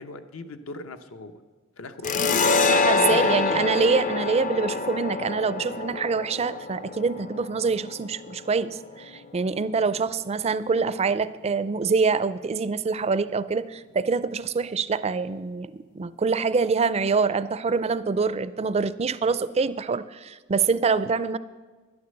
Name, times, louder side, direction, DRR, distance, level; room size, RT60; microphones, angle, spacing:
voice 1, 0.0-1.3 1.8-2.7 3.0-3.7, left 2 dB, 70° left, 8 dB, 0.8 m, -39 dB
sound 1, 2.0-9.2, left 4 dB, 40° left, 0.5 m, -26 dB
voice 2, 2.7-21.4, right 4 dB, 30° right, 15 dB, 0.4 m, -25 dB
11.0 x 9.7 x 6.5 m, 1.4 s
head